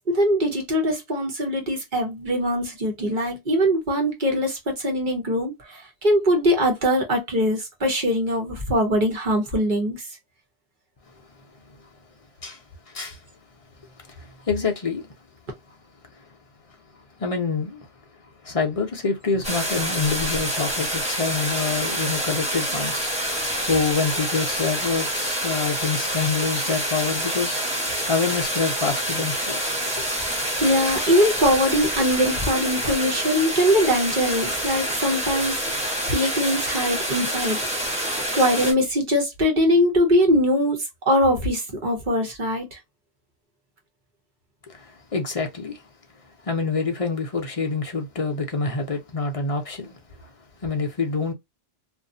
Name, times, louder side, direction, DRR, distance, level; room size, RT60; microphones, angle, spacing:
voice 1, 0.1-10.0 30.3-37.6 37.9-40.8 41.1-42.8, equal, 50° right, 1.1 m, -22 dB
voice 2, 12.9-13.2 14.2-15.0 17.2-17.9 18.4-23.1 23.6-27.6 28.1-29.6 44.8-45.8 46.4-49.9 50.6-51.3, left 4 dB, 40° left, 0.6 m, -26 dB
sound 1, 19.4-38.7, equal, 5° right, 1.0 m, -27 dB
2.5 x 2.5 x 2.6 m
omnidirectional pair, 1.1 m